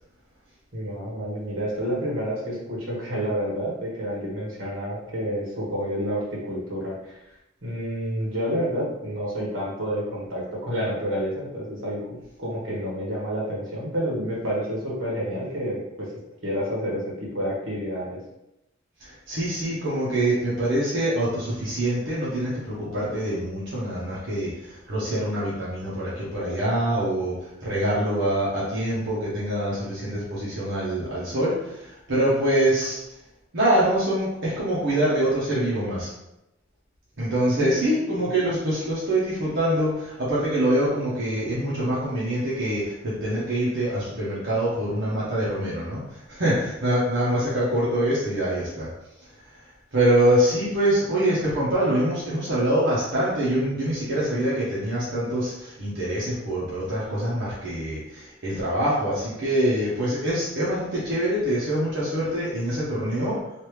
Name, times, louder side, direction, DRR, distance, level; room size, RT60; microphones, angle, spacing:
voice 1, 0.7-7.2 7.6-16.1 16.4-18.2 37.6-37.8 38.2-38.3, equal, 85° right, -5 dB, 1.3 m, -29 dB
voice 2, 19.0-33.0 33.5-36.1 37.2-48.9 49.9-63.4, right 1 dB, 60° right, -8 dB, 0.9 m, -25 dB
3.2 x 2.6 x 3.1 m, 0.88 s
head